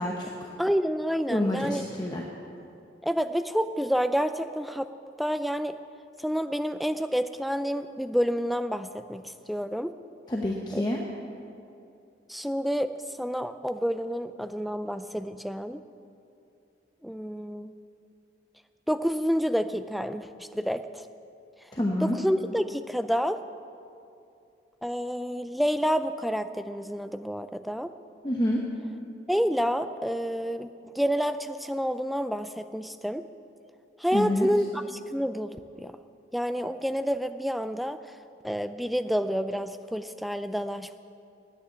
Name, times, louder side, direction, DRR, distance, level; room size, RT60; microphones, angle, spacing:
voice 1, 0.0-0.5 1.3-2.2 10.3-11.0 21.7-22.2 28.2-28.6 34.1-34.5, left 1 dB, 25° left, -1 dB, 0.9 m, -28 dB
voice 2, 0.6-1.8 3.0-4.9 5.2-5.8 6.2-9.9 10.7-10.9 12.3-15.8 17.0-17.7 18.9-21.1 22.0-23.4 24.8-27.9 29.3-33.2 34.0-36.0 36.3-38.2 38.4-41.0, equal, ahead, 10 dB, 0.3 m, -29 dB
9.9 x 9.0 x 9.2 m, 2.6 s
head